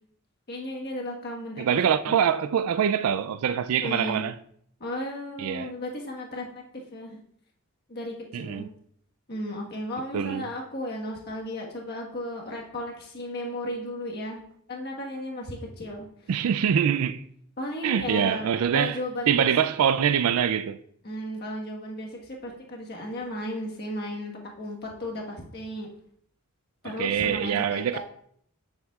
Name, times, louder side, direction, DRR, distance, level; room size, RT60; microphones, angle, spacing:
voice 1, 0.5-1.6 2.1-2.2 3.8-4.2 4.8-7.2 7.9-8.7 9.3-14.4 14.7-16.1 17.6-19.5 21.0-25.9 26.8-28.0, left 1 dB, 50° left, 1.4 m, -35 dB
voice 2, 1.6-4.3 5.4-5.7 8.3-8.7 10.1-10.5 16.3-17.2 17.8-19.0 19.3-20.8 27.0-28.0, right 8 dB, 90° right, 0.4 m, -24 dB
9.1 x 7.1 x 2.4 m
head